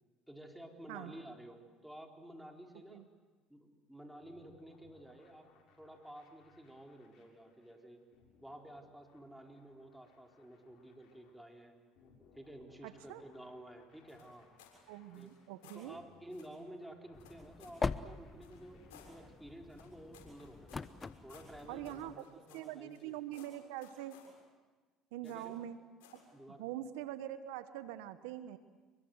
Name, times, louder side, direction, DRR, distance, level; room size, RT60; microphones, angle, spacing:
voice 1, 0.3-3.0 3.5-5.5 5.8-8.0 8.4-11.7 12.3-14.5 15.1-15.3 15.7-20.8 21.2-23.2 25.2-25.6 26.3-26.7, right 1 dB, 5° right, 2 dB, 4.5 m, -52 dB
sound 1, 4.2-19.6, left 5 dB, 65° left, 7.1 m, -68 dB
voice 2, 12.8-13.2 14.9-16.0 21.7-22.3 22.5-24.2 25.1-25.8 26.6-28.6, right 13 dB, 80° right, 12 dB, 1.1 m, -44 dB
sound 2, 14.1-14.8 15.1-15.8 16.3-16.6 17.2-17.8 18.4-19.1 19.7-23.1 23.3-24.3 25.2-25.6 26.0-26.3, left 8 dB, 85° left, 7.2 m, -60 dB
sound 3, 17.1-22.2, left 4 dB, 25° left, 1.0 m, -43 dB
28.0 x 24.0 x 8.1 m, 1.3 s
supercardioid pair, 80°, 0 cm